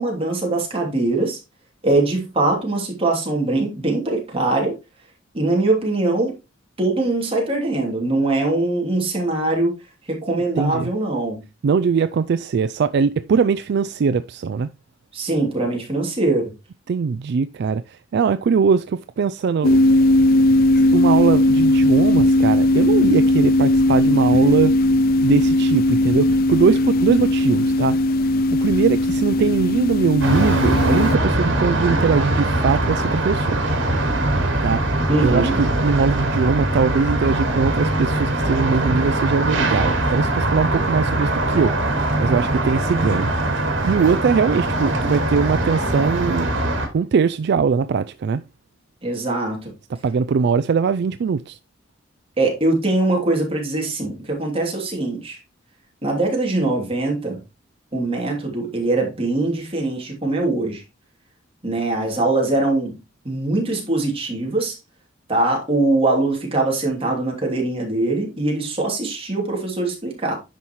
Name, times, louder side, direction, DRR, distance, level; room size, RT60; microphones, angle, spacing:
voice 1, 0.0-1.4 1.8-4.8 5.3-6.3 6.8-9.7 10.1-11.4 15.1-16.5 35.1-35.6 49.0-49.7 52.4-55.4 56.0-57.4 57.9-60.8 61.6-64.8 65.3-70.4, right 2 dB, 30° right, 2.9 m, -22 dB
voice 2, 10.6-10.9 11.6-14.7 16.9-19.8 20.9-24.7 25.2-28.0 28.6-33.6 34.6-34.8 35.2-43.3 43.8-46.5 46.9-48.4 49.9-51.6, right 5 dB, 60° right, 0.3 m, -21 dB
sound 1, 19.6-31.2, left 1 dB, 50° left, 0.3 m, -17 dB
sound 2, 30.2-46.9, right 1 dB, 75° right, 2.5 m, -21 dB
10.0 x 5.6 x 3.1 m
head